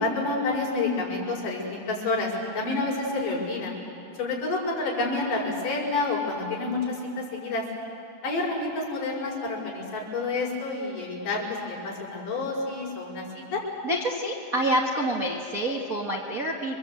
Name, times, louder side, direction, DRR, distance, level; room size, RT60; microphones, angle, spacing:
voice 1, 0.0-3.8 4.2-7.6 8.2-13.6, left 3 dB, 65° left, -5 dB, 7.0 m, -29 dB
voice 2, 13.8-16.8, right 1 dB, 40° right, -2 dB, 1.3 m, -27 dB
29.5 x 23.5 x 8.3 m, 2.7 s
omnidirectional pair, 4.1 m